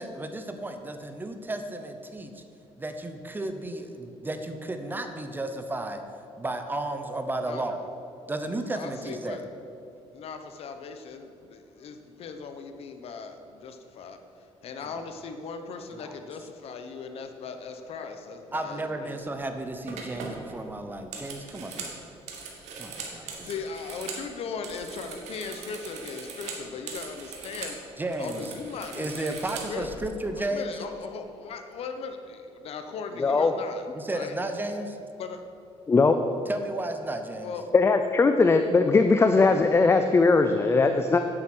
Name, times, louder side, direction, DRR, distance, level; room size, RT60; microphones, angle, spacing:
voice 1, 0.0-2.4 2.8-6.0 6.4-7.8 8.3-9.4 14.8-14.9 15.9-16.1 18.5-22.0 22.8-23.5 28.0-28.5 28.9-30.8 33.9-35.0 36.5-37.5, right 2 dB, 15° right, 7 dB, 0.8 m, -33 dB
voice 2, 8.7-9.4 9.9-14.2 14.6-19.2 23.4-27.8 28.2-29.9 30.3-34.4 35.2-35.4 37.4-37.7, left 5 dB, 60° left, 7 dB, 1.0 m, -38 dB
sound 1, 19.2-19.5 19.9-24.3 24.5-27.8 28.1-30.0, right 4 dB, 80° right, 1.8 m, -40 dB
voice 3, 33.2-33.5 35.9-36.2 37.7-41.2, left 4 dB, 20° left, 7 dB, 0.5 m, -20 dB
9.3 x 7.9 x 6.2 m, 2.6 s
cardioid pair, 120°, 11 cm